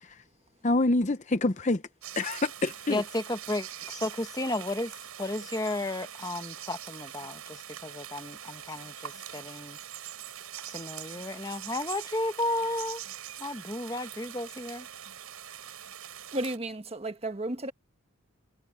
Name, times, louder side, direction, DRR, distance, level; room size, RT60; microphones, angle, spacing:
voice 1, 0.6-1.8 2.2-3.0, left 2 dB, 35° left, 0.7 m, -26 dB
sound 1, 2.0-16.6, right 10 dB, 80° right, 5.4 m, -43 dB
voice 2, 2.9-9.8 10.7-13.0 13.4-14.9, left 2 dB, 15° left, 1.1 m, -33 dB
voice 3, 16.3-17.7, right 1 dB, 25° right, 1.3 m, -33 dB
head